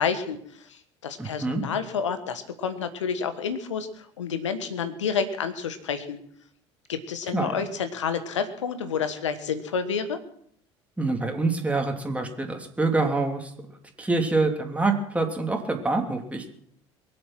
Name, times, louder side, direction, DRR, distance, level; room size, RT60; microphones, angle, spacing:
voice 1, 0.0-6.2 6.9-10.2, left 6 dB, 85° left, 11 dB, 1.4 m, -29 dB
voice 2, 1.2-1.6 7.3-7.6 11.0-13.5 14.0-16.5, right 3 dB, 10° right, 3 dB, 3.0 m, -26 dB
22.5 x 8.0 x 6.2 m, 0.66 s
hypercardioid pair, 65°, 15 cm